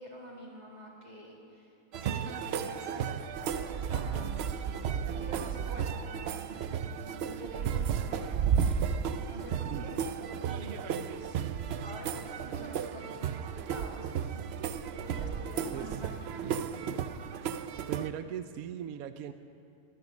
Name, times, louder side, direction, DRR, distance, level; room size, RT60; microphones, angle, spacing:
voice 1, 0.0-4.9 5.1-8.9 9.2-9.9 10.4-11.4 11.8-14.4 15.0-16.5, equal, 25° right, -4 dB, 2.1 m, -48 dB
sound 1, 1.9-18.1, right 7 dB, 90° right, 0.5 m, -33 dB
voice 2, 16.4-16.7 17.9-19.3, right 10 dB, 70° right, 10 dB, 1.0 m, -39 dB
23.0 x 9.8 x 6.3 m, 2.5 s
omnidirectional pair, 1.8 m